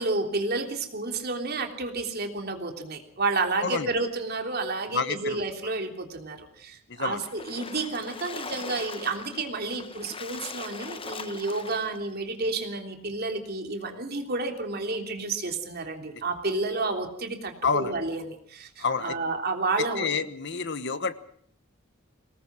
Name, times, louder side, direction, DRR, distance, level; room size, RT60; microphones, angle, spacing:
voice 1, 0.0-20.1, right 3 dB, 50° right, 4 dB, 3.3 m, -30 dB
voice 2, 3.6-3.9 4.9-5.4 6.9-7.2 17.6-18.0 18.8-19.2 20.0-21.1, left 5 dB, 60° left, 13 dB, 1.2 m, -28 dB
Splash splatter, 7.2-12.1, left 5 dB, 25° left, 0.8 m, -40 dB
24.0 x 19.0 x 6.1 m, 0.64 s
head